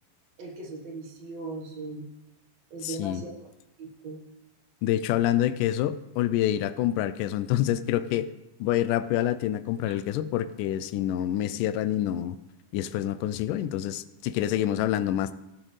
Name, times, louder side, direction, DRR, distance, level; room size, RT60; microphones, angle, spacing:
voice 1, 0.4-2.1 2.7-3.3 3.8-4.2 9.9-10.0, right 2 dB, 60° right, -1 dB, 2.5 m, -38 dB
voice 2, 2.8-3.2 4.8-8.3 8.6-12.4 12.7-15.3, left 12 dB, 85° left, 14 dB, 2.1 m, -27 dB
16.5 x 8.8 x 3.2 m, 0.94 s
omnidirectional pair, 3.7 m